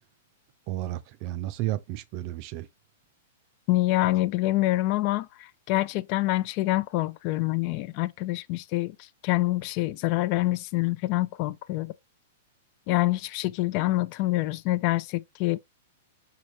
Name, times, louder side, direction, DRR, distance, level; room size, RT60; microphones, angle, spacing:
voice 1, 0.7-2.7, right 15 dB, 45° right, 0.6 m, -32 dB
voice 2, 3.7-9.0 9.2-11.9 12.9-15.6, left 18 dB, 45° left, 0.4 m, -26 dB
4.8 x 3.0 x 3.0 m
figure-of-eight pair, 105°, 0 cm